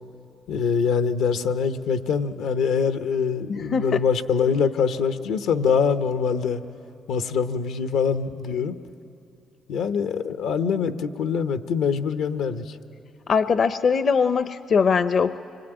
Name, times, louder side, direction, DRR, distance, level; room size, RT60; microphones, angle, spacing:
voice 1, 0.5-6.6 7.1-8.8 9.7-12.8, left 6 dB, 90° left, 9 dB, 0.9 m, -24 dB
voice 2, 3.5-4.0 13.3-15.4, left 5 dB, 50° left, 12 dB, 0.6 m, -21 dB
24.5 x 23.0 x 9.0 m, 2.7 s
cardioid pair, 90°, 0 cm